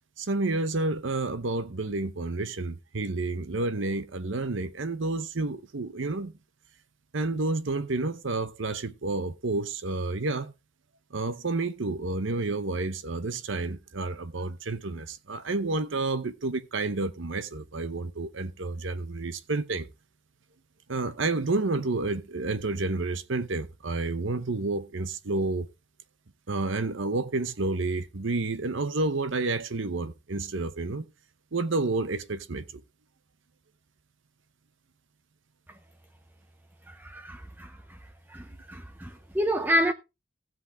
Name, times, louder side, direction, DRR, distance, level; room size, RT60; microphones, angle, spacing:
voice 1, 0.2-6.3 7.1-10.5 11.1-19.9 20.9-25.7 26.5-31.0 31.5-32.8, right 3 dB, 60° right, 0.8 m, -30 dB
voice 2, 36.9-37.7 38.3-39.9, equal, 10° right, 0.5 m, -29 dB
16.0 x 7.8 x 3.3 m
head